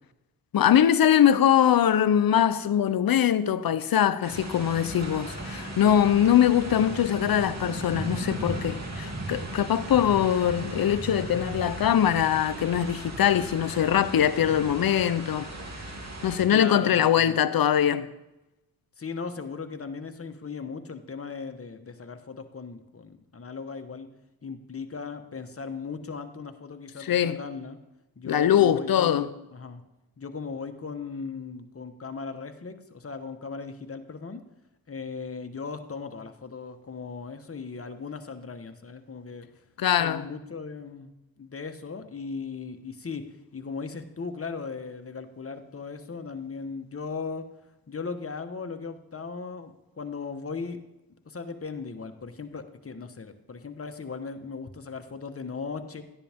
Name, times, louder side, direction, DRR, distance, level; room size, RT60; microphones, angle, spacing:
voice 1, 0.5-15.5 16.2-18.1 27.0-27.4 28.3-29.3 39.8-40.3, left 10 dB, 70° left, 0.8 m, -22 dB
sound 1, 4.2-16.4, right 1 dB, 45° right, 2.9 m, -36 dB
voice 2, 16.5-17.4 19.0-24.1 24.4-27.8 28.2-29.2 29.5-29.8 30.2-34.4 34.9-39.5 40.0-43.2 43.5-47.5 47.9-50.8 51.2-56.0, left 5 dB, 35° left, 1.3 m, -37 dB
13.5 x 10.0 x 3.6 m
cardioid pair, 55°, 37 cm